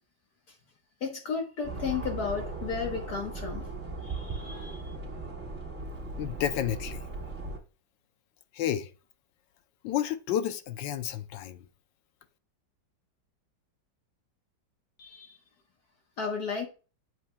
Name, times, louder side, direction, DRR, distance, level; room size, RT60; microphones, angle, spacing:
voice 1, 1.0-3.7 4.0-4.9 15.0-15.4 16.2-16.7, left 5 dB, 60° left, 1.6 m, -34 dB
sound 1, 1.6-7.6, right 2 dB, 40° right, 2.3 m, -38 dB
voice 2, 6.2-7.0 8.5-8.9 9.8-11.6, left 10 dB, 80° left, 1.4 m, -31 dB
8.2 x 7.8 x 2.2 m
omnidirectional pair, 2.0 m